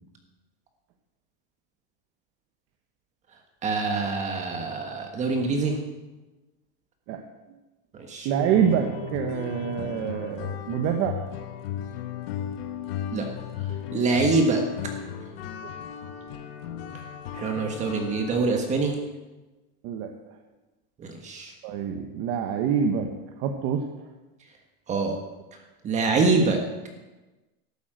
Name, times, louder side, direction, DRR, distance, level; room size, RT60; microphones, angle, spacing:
voice 1, 3.6-5.8 8.0-8.3 13.1-13.2 13.9-14.6 17.3-19.0 21.0-21.5 24.9-25.2 25.8-26.6, right 3 dB, 25° right, 3 dB, 1.4 m, -24 dB
voice 2, 8.2-11.2 19.8-20.1 21.6-23.1 23.4-23.8, right 8 dB, 45° right, 4 dB, 1.1 m, -26 dB
sound 1, 8.4-18.4, left 9 dB, 75° left, 1.3 m, -35 dB
12.5 x 8.5 x 7.8 m, 1.1 s
supercardioid pair, 165°, 30 cm